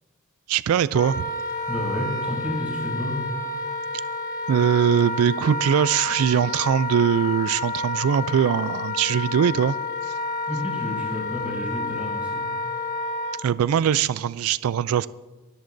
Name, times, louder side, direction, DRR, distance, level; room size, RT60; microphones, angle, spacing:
voice 1, 0.5-1.3 4.5-9.8 10.0-10.1 13.4-15.1, right 8 dB, 80° right, 17 dB, 0.3 m, -21 dB
Wind instrument woodwind instrument, 0.9-13.4, left 2 dB, 40° left, 1.5 m, -30 dB
voice 2, 1.7-3.2 10.5-12.4, equal, 5° right, -2 dB, 5.6 m, -30 dB
26.0 x 13.5 x 2.6 m, 1.3 s
head